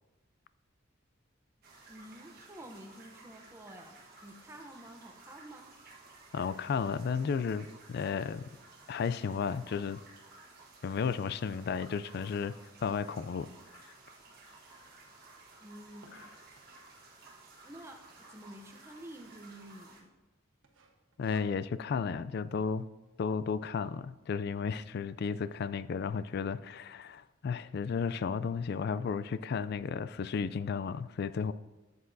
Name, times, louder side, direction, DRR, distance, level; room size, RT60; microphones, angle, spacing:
sound 1, 1.6-20.0, right 3 dB, 50° right, 1.3 m, -55 dB
voice 1, 1.9-4.0 4.2-5.8 15.6-16.3 17.6-20.1, right 1 dB, 15° right, 0.7 m, -50 dB
voice 2, 6.3-8.5 8.9-10.0 10.8-12.5 12.8-13.5 16.1-16.3 21.2-22.9 23.2-31.5, left 6 dB, 55° left, 0.3 m, -33 dB
sound 2, 15.0-17.0 17.6-18.0 18.4-18.5 18.7-18.8 19.3-19.7 20.0-20.2 20.6-21.9, right 3 dB, 80° right, 1.2 m, -61 dB
12.5 x 7.9 x 2.6 m
head